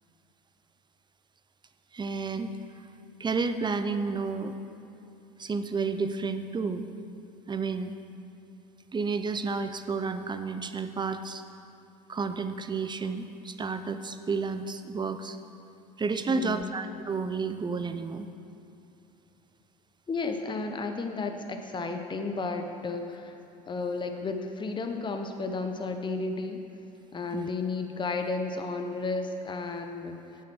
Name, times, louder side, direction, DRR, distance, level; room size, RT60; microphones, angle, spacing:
voice 1, 1.9-2.6 3.2-4.5 5.4-6.9 7.5-7.9 8.9-11.4 12.1-15.4 16.0-18.3 27.3-27.5, right 4 dB, 20° right, 9 dB, 0.7 m, -31 dB
voice 2, 16.3-16.7 20.1-23.4 23.7-26.6 27.1-30.2, left 3 dB, 20° left, 5 dB, 0.9 m, -33 dB
8.5 x 8.4 x 6.2 m, 2.8 s
hypercardioid pair, 70°, 21 cm